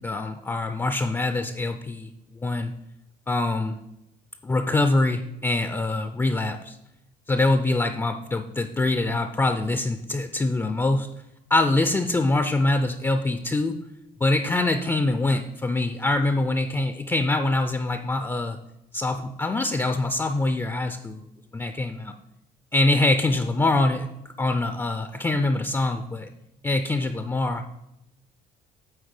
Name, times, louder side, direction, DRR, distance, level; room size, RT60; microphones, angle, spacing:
voice 1, 0.0-2.1 2.4-2.7 3.3-3.8 4.4-6.8 7.3-11.1 11.5-13.8 14.2-18.6 18.9-21.3 21.5-22.1 22.7-26.3 26.6-27.7, left 2 dB, 15° left, 7 dB, 0.4 m, -24 dB
8.9 x 3.2 x 6.5 m, 0.87 s
cardioid pair, 110°, 17 cm